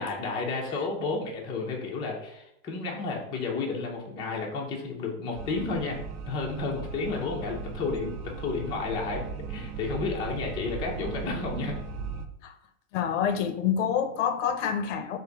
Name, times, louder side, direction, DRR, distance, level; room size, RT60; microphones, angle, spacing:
voice 1, 0.0-6.0 6.3-11.8, left 4 dB, 15° left, 0.4 m, -32 dB
sound 1, 5.3-12.2, right 5 dB, 50° right, 0.6 m, -37 dB
voice 2, 12.9-15.2, left 8 dB, 70° left, 0.6 m, -27 dB
3.9 x 2.5 x 4.5 m
supercardioid pair, 150°, 39 cm